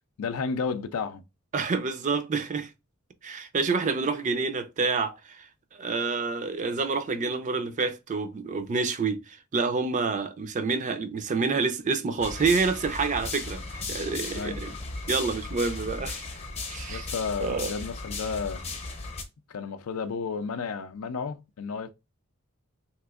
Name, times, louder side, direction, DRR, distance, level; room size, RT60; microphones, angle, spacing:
voice 1, 0.2-1.2 14.3-14.6 16.9-18.7 19.5-21.9, left 5 dB, 80° left, 0.4 m, -32 dB
voice 2, 1.5-2.7 3.2-14.7 15.1-16.2 16.7-17.1 17.4-17.7, right 4 dB, 35° right, 0.4 m, -28 dB
sound 1, 12.2-19.2, left 3 dB, 30° left, 0.7 m, -36 dB
3.4 x 2.9 x 2.3 m
head